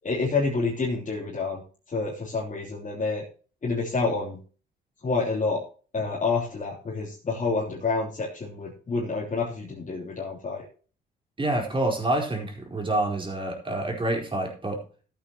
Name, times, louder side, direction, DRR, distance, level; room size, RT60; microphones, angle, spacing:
voice 1, 0.0-1.6 1.9-3.2 3.6-4.4 5.0-5.6 5.9-10.6, left 4 dB, 40° left, -5 dB, 3.3 m, -28 dB
voice 2, 11.4-14.8, right 1 dB, 25° right, 1 dB, 4.3 m, -27 dB
14.5 x 8.6 x 3.0 m, 0.38 s
cardioid pair, 90°, 20 cm